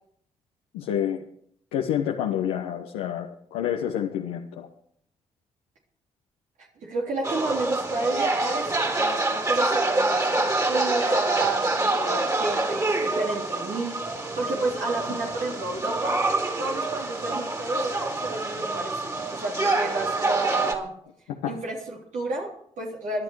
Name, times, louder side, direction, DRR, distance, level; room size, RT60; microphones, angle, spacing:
voice 1, 0.7-1.2 1.7-4.7 21.4-21.5, left 10 dB, 85° left, 1 dB, 1.2 m, -28 dB
voice 2, 6.8-8.7 9.0-16.2 16.6-20.9 21.4-23.2, right 2 dB, 65° right, -2 dB, 3.5 m, -31 dB
sound 1, 7.2-20.7, right 2 dB, 25° right, 4.0 m, -26 dB
20.0 x 11.0 x 4.8 m, 0.64 s
hypercardioid pair, 45°, 13 cm